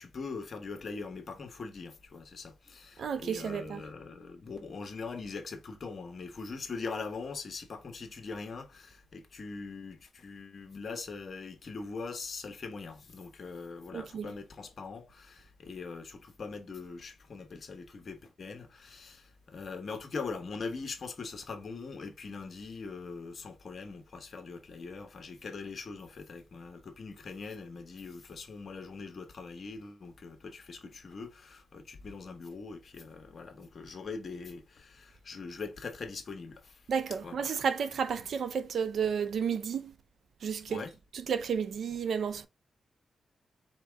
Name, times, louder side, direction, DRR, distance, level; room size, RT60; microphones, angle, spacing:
voice 1, 0.0-36.8 37.2-37.5 38.2-38.3 40.7-40.9, left 4 dB, 55° left, 1.1 m, -42 dB
voice 2, 3.0-3.8 13.9-14.3 36.9-39.9 40.4-40.8 41.3-42.5, right 7 dB, 75° right, 0.5 m, -32 dB
4.5 x 2.8 x 3.5 m
cardioid pair, 70°, 0 cm